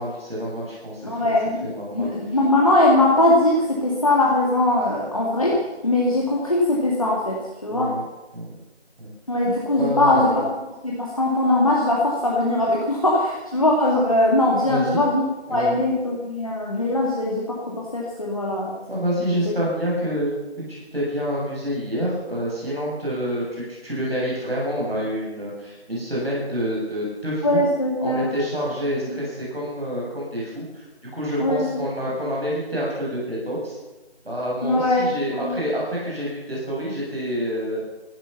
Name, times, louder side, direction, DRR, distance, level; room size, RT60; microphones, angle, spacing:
voice 1, 0.0-1.3 1.6-2.1 7.7-8.0 8.3-8.5 9.0-9.1 9.8-10.4 14.5-15.1 15.5-15.8 18.9-20.4 20.7-27.6 28.0-30.8 31.1-33.8 34.2-37.8, equal, 60° right, -5 dB, 7.9 m, -27 dB
voice 2, 1.0-7.9 9.3-10.5 10.8-15.2 15.5-18.8 27.4-28.3 31.4-31.8 34.6-35.1 35.3-35.5, left 1 dB, 30° left, -3 dB, 2.2 m, -21 dB
16.0 x 12.0 x 7.1 m, 1.1 s
figure-of-eight pair, 170°, 33 cm